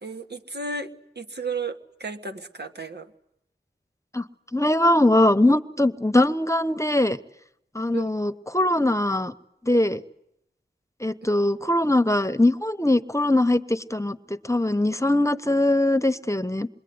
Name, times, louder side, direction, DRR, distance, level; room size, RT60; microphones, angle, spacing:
voice 1, 0.0-3.1 7.9-8.1, right 4 dB, 70° right, 5 dB, 1.7 m, -34 dB
voice 2, 4.5-7.2 7.7-9.3 9.6-10.0 11.0-16.7, left 1 dB, 15° left, 12 dB, 1.1 m, -21 dB
27.0 x 22.5 x 9.6 m, 0.80 s
wide cardioid pair, 40°, 17 cm